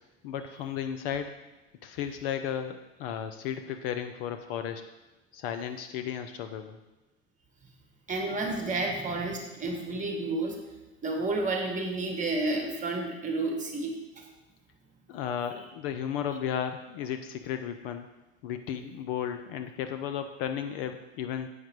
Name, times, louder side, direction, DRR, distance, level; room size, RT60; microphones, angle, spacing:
voice 1, 0.2-1.4 1.8-4.8 5.3-6.8 15.1-18.1 18.4-21.5, left 9 dB, 45° left, 8 dB, 0.6 m, -34 dB
voice 2, 8.1-10.6 11.0-14.3, right 2 dB, 20° right, 3 dB, 1.5 m, -31 dB
8.2 x 5.9 x 4.6 m, 1.1 s
hypercardioid pair, 110°, 40 cm